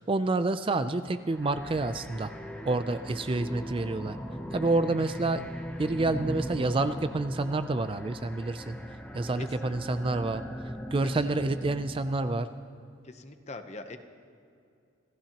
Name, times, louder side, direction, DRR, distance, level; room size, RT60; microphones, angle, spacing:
voice 1, 0.0-2.3 2.7-4.2 4.5-5.4 5.8-8.8 9.1-10.4 10.9-12.5, right 2 dB, 30° right, 11 dB, 0.4 m, -28 dB
sound 1, 1.3-12.1, equal, 5° left, 0.9 m, -39 dB
voice 2, 9.2-9.7 11.0-11.4 13.0-14.0, left 3 dB, 35° left, 8 dB, 0.9 m, -43 dB
27.0 x 15.5 x 2.9 m, 2.5 s
head